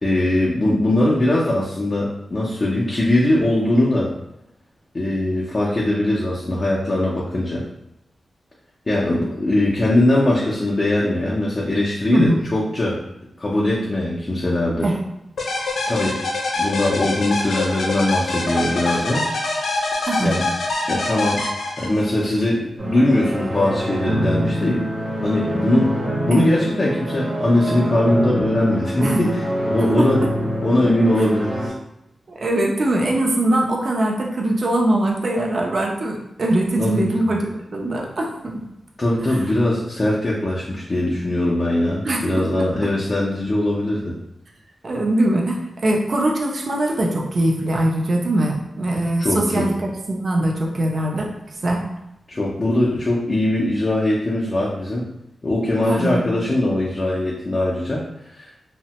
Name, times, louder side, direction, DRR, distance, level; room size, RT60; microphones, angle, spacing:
voice 1, 0.0-4.1 4.9-7.6 8.9-13.0 13.4-14.9 15.9-16.2 16.6-19.2 19.6-19.8 20.2-20.4 20.9-21.5 21.8-24.9 25.2-25.9 26.2-30.2 30.6-31.7 36.8-37.1 39.0-44.1 49.2-49.7 52.3-55.1 55.4-58.0 58.3-58.5, left 1 dB, 25° left, -6 dB, 0.4 m, -21 dB
voice 2, 12.1-12.4 14.8-14.9 20.0-20.4 26.3-26.5 29.0-29.3 30.0-30.1 32.4-38.6 39.3-39.4 42.0-42.9 44.8-51.3 51.6-51.9 55.9-56.2, right 1 dB, 40° right, 0 dB, 0.5 m, -21 dB
sound 1, 15.4-22.2, left 2 dB, 80° left, 0.5 m, -24 dB
sound 2, 22.8-31.7, equal, 65° right, 1.0 m, -25 dB
3.1 x 2.1 x 2.8 m, 0.84 s
wide cardioid pair, 175°, 0 cm